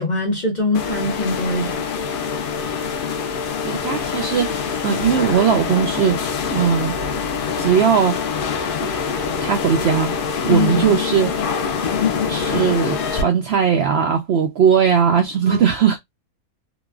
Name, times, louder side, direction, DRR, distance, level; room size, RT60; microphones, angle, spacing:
voice 1, 0.0-1.8 10.5-10.8 15.5-15.7, left 2 dB, 40° left, 0.7 m, -22 dB
sound 1, 0.7-13.2, left 6 dB, 75° left, 0.4 m, -24 dB
voice 2, 3.6-6.9 7.6-8.2 8.8-8.9 9.4-10.1 10.5-11.4 12.3-16.0, right 7 dB, 65° right, 0.6 m, -19 dB
2.9 x 2.2 x 2.3 m
omnidirectional pair, 1.5 m